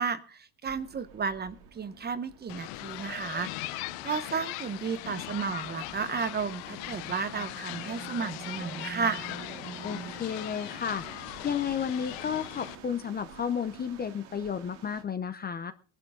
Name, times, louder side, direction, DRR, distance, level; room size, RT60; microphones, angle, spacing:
voice 1, 0.0-9.3, right 6 dB, 20° right, 14 dB, 0.9 m, -33 dB
sound 1, 0.6-15.0, right 7 dB, 90° right, 2.8 m, -48 dB
sound 2, 2.5-12.8, left 18 dB, 75° left, 0.9 m, -40 dB
voice 2, 9.8-15.7, left 7 dB, 20° left, 11 dB, 0.6 m, -32 dB
20.5 x 11.0 x 3.8 m, 0.38 s
cardioid pair, 135°, 44 cm